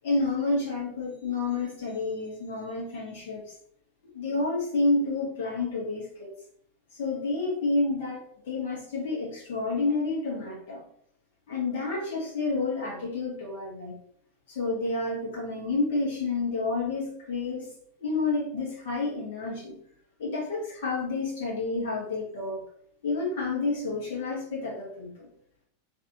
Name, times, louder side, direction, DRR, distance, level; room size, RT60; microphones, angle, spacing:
voice 1, 0.0-3.4 4.1-6.3 7.0-10.8 11.5-14.0 14.5-17.7 18.0-19.7 20.2-22.6 23.0-25.3, left 3 dB, 55° left, -4 dB, 1.5 m, -29 dB
3.1 x 2.8 x 2.8 m, 0.65 s
figure-of-eight pair, 90°, 0 cm